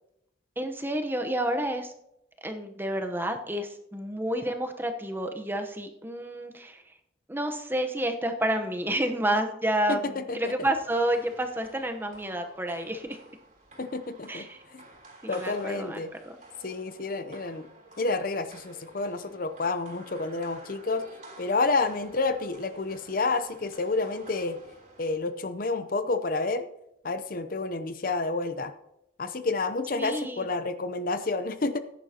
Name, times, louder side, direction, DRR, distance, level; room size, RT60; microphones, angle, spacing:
voice 1, 0.6-1.9 2.4-6.8 7.3-13.2 14.3-14.6 15.2-16.4 30.0-30.4, right 1 dB, 10° right, 5 dB, 0.9 m, -30 dB
voice 2, 9.9-10.7 13.8-14.8 15.3-16.1 16.6-17.7 18.0-21.0 21.4-24.6 25.0-26.7 27.0-28.7 29.2-31.8, left 3 dB, 50° left, 10 dB, 0.7 m, -29 dB
sound 1, 10.5-25.4, right 2 dB, 45° right, 3.4 m, -51 dB
15.0 x 10.0 x 2.9 m, 0.80 s
head